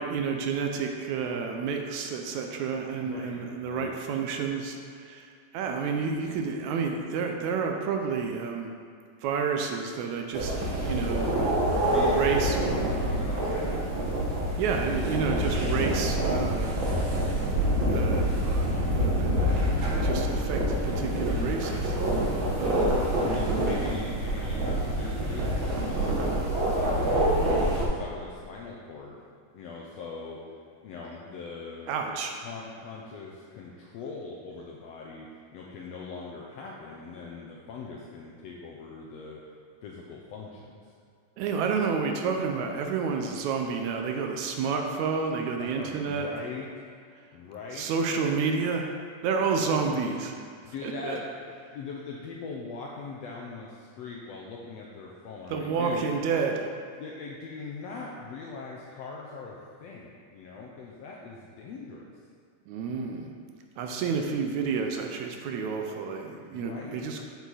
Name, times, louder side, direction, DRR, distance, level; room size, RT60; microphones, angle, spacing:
voice 1, 0.0-8.7 9.2-10.5 10.9-11.3 12.1-13.8 14.6-17.1 17.9-19.7 20.0-22.0 22.6-22.9 23.3-23.6 31.9-32.3 41.4-46.4 47.7-48.9 49.2-50.3 50.8-51.2 55.5-56.7 62.7-63.3 63.8-67.2, right 5 dB, 75° right, 3 dB, 1.8 m, -30 dB
voice 2, 3.0-3.9 11.7-13.8 22.1-22.3 22.6-27.4 27.7-29.2 29.5-30.4 30.8-32.0 32.4-35.3 35.5-39.4 39.8-40.7 45.6-46.6 47.3-47.9 50.6-51.3 51.7-56.0 57.0-62.0 66.5-67.0, left 4 dB, 80° left, -2 dB, 1.5 m, -40 dB
sound 1, 10.3-27.8, right 1 dB, 55° right, 1.4 m, -26 dB
8.1 x 7.2 x 4.0 m, 2.2 s
omnidirectional pair, 3.7 m